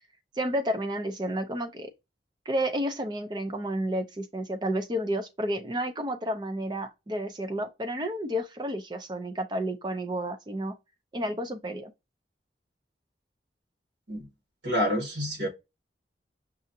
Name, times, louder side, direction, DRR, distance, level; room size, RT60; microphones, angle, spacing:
voice 1, 0.4-1.9 2.5-10.8 11.1-11.9, equal, 25° right, 0.5 m, -31 dB
voice 2, 14.6-15.5, equal, 80° right, 1.7 m, -28 dB
5.4 x 2.4 x 2.7 m
head